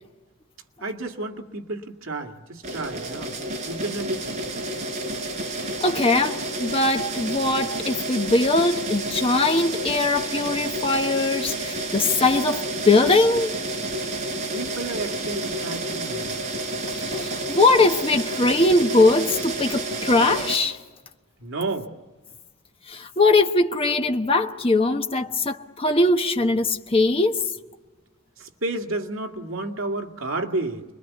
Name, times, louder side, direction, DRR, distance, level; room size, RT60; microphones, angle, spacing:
voice 1, 0.8-3.4 3.7-4.4 14.5-16.4 21.4-21.9 28.4-30.8, right 2 dB, 70° right, 2.1 m, -31 dB
sound 1, 2.6-20.6, right 2 dB, 35° right, 4.0 m, -30 dB
voice 2, 5.8-13.5 16.9-20.8 22.9-27.5, left 2 dB, 25° left, 1.1 m, -21 dB
28.5 x 22.0 x 8.3 m
head